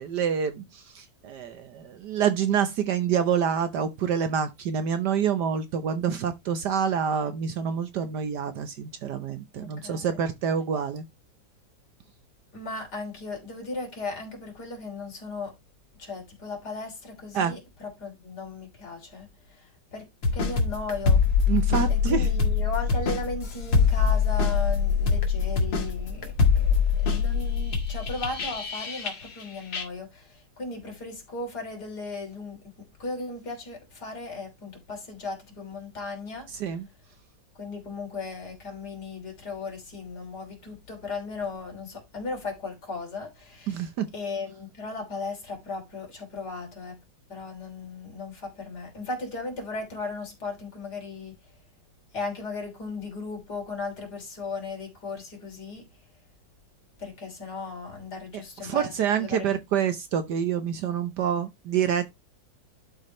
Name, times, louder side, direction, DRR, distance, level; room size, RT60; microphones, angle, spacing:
voice 1, 0.0-11.0 17.3-17.5 21.5-22.3 36.6-36.9 43.7-44.1 58.3-62.1, right 7 dB, 65° right, 1.4 m, -27 dB
voice 2, 12.5-15.5 16.0-21.2 21.9-36.5 37.6-43.9 44.1-47.0 47.3-51.3 52.1-55.9 57.0-59.5, left 3 dB, 60° left, 3.7 m, -36 dB
sound 1, 20.2-29.4 29.7-29.8, left 6 dB, 80° left, 2.5 m, -24 dB
11.5 x 4.7 x 3.1 m
omnidirectional pair, 2.0 m